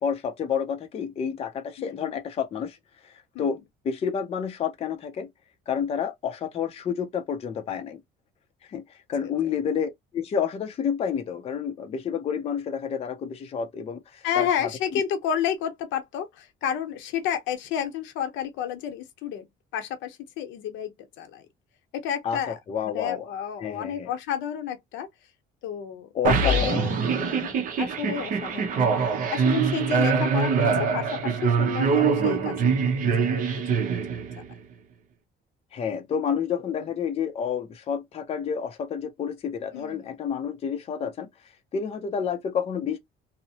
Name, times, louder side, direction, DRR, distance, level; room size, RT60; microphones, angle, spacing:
voice 1, 0.0-2.8 3.4-3.6 3.8-5.3 5.7-8.0 8.7-8.8 9.1-14.7 22.2-23.3 23.6-24.1 26.1-26.9 35.7-41.3 41.7-43.0, left 7 dB, 30° left, 0.5 m, -29 dB
voice 2, 1.8-2.1 3.3-3.6 14.2-19.4 19.7-20.9 21.2-21.4 21.9-22.6 22.8-25.1 25.6-26.1 26.4-28.8 29.3-30.7 30.9-32.6 32.8-33.4 34.4-34.5 36.6-36.9 39.7-40.1, left 9 dB, 80° left, 0.7 m, -31 dB
sound 1, 26.2-34.5, right 5 dB, 45° right, 0.7 m, -24 dB
2.8 x 2.0 x 2.7 m
cardioid pair, 155°, 19 cm